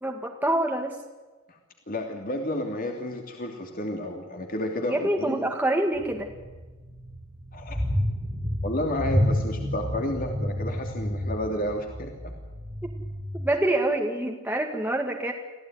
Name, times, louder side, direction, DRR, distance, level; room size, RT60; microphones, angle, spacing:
voice 1, 0.0-1.0 4.9-6.3 12.8-12.9 13.3-15.3, right 1 dB, 10° right, 1 dB, 2.0 m, -26 dB
voice 2, 1.9-5.5 7.5-7.8 8.6-12.3, left 1 dB, 40° left, 2 dB, 2.9 m, -31 dB
sound 1, 5.9-13.4, equal, 25° right, 2.8 m, -30 dB
25.5 x 16.5 x 9.5 m, 1.3 s
head